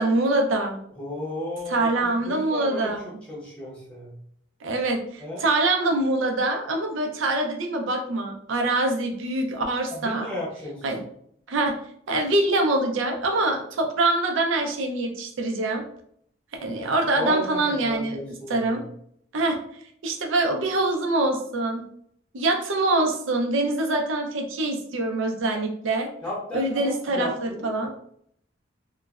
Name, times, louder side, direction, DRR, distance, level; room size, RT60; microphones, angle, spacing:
voice 1, 0.0-0.8 1.7-3.1 4.6-10.3 10.8-11.0 11.5-11.8 12.1-15.8 16.6-18.2 18.5-18.8 19.3-19.6 20.0-21.8 22.3-26.1 26.5-27.9, right 2 dB, 80° right, 3 dB, 0.5 m, -24 dB
voice 2, 0.9-4.1 5.2-5.5 9.9-10.8 17.2-18.9 26.2-27.7, left 1 dB, 5° left, -6 dB, 0.7 m, -34 dB
3.1 x 2.1 x 2.3 m, 0.65 s
head